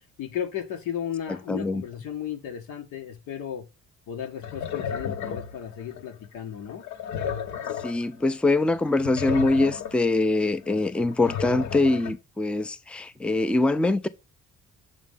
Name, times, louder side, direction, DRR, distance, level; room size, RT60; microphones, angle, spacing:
voice 1, 0.2-3.7 4.1-6.8, left 9 dB, 90° left, 1.7 m, -34 dB
voice 2, 1.5-1.8 7.8-14.1, left 2 dB, 5° left, 0.5 m, -23 dB
sound 1, 4.2-6.2 6.7-8.1 8.4-8.5 8.7-10.1 10.5-12.1, left 7 dB, 70° left, 1.1 m, -33 dB
7.4 x 3.2 x 5.4 m
cardioid pair, 90°, 30 cm